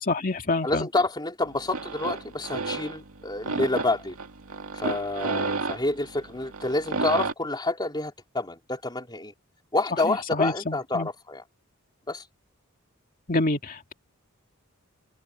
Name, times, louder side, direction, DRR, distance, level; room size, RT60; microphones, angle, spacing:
voice 1, 0.1-0.9 10.0-11.1 13.3-13.9, left 2 dB, 40° left, 2.2 m, -27 dB
voice 2, 0.6-4.2 4.7-9.3 9.7-11.4 12.1-12.2, left 2 dB, 20° left, 3.6 m, -28 dB
sound 1, 1.4-7.3, right 3 dB, 90° right, 2.1 m, -32 dB
open air
head